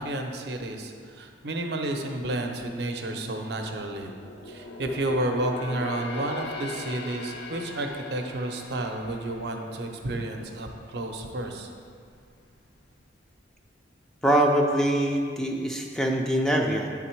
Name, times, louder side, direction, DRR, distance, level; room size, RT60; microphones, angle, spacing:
voice 1, 0.0-4.1 4.5-11.7, right 1 dB, 60° right, 3 dB, 0.6 m, -31 dB
sound 1, 3.5-10.8 11.2-11.4 11.9-12.7 13.0-13.1, left 2 dB, 65° left, 0.6 m, -40 dB
voice 2, 14.2-16.9, right 1 dB, 5° left, 0 dB, 0.3 m, -23 dB
8.2 x 3.8 x 4.5 m, 2.2 s
head